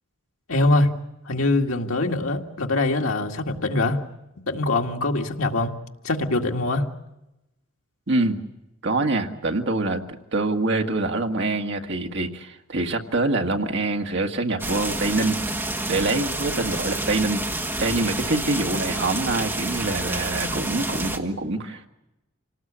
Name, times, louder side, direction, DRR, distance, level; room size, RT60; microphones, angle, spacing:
voice 1, 0.5-4.0 4.5-5.7 6.0-6.9, left 2 dB, 75° left, 2 dB, 2.1 m, -23 dB
voice 2, 8.1-8.4 8.8-15.4 15.9-17.4 17.8-21.9, right 2 dB, 55° right, 4 dB, 1.8 m, -25 dB
sound 1, 14.6-21.2, right 2 dB, 10° right, 1.7 m, -29 dB
27.0 x 19.0 x 8.7 m, 0.95 s
head